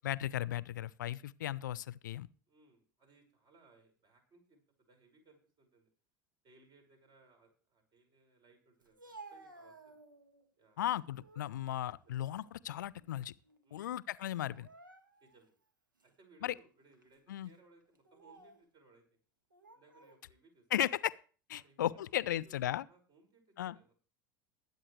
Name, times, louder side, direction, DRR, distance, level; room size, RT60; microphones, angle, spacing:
voice 1, 0.0-2.3 10.8-13.3 13.7-14.7 16.4-16.5 17.3-17.5 20.7-21.1 21.5-22.8 23.6-23.8, left 12 dB, 70° left, 0.5 m, -36 dB
voice 2, 2.5-4.6 4.9-5.9 6.4-10.0 10.6-10.9 13.6-13.9 15.2-15.5 16.0-19.2 19.7-20.6 21.5-24.1, right 3 dB, 45° right, 5.7 m, -65 dB
Speech, 8.8-10.4 10.9-11.5 12.0-13.2 13.4-13.7 14.4-15.4 16.0-16.1 16.9-17.2 17.9-18.6 19.5-20.2, right 3 dB, 85° right, 1.8 m, -56 dB
21.5 x 8.7 x 3.2 m
figure-of-eight pair, 75°, 10 cm